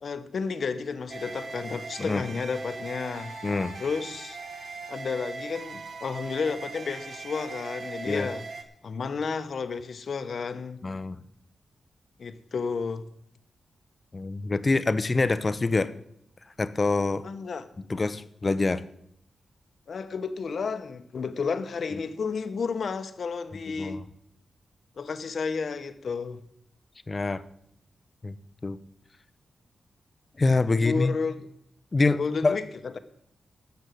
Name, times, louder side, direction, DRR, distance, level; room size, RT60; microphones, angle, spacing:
voice 1, 0.0-3.3 3.8-4.4 4.9-8.4 8.8-10.8 12.2-13.1 17.2-17.7 19.9-24.0 25.0-26.4 30.7-31.3 32.2-33.0, left 5 dB, 55° left, 1.0 m, -32 dB
sound 1, 1.1-8.6, right 3 dB, 55° right, 1.6 m, -40 dB
voice 2, 3.4-3.7 8.1-8.3 10.8-11.2 14.1-15.9 16.6-17.2 17.9-18.8 23.8-24.0 27.1-27.4 28.2-28.4 28.6-28.8 30.4-31.2 31.9-32.6, left 3 dB, 30° left, 0.7 m, -25 dB
12.5 x 7.2 x 7.8 m
wide cardioid pair, 125°, 0 cm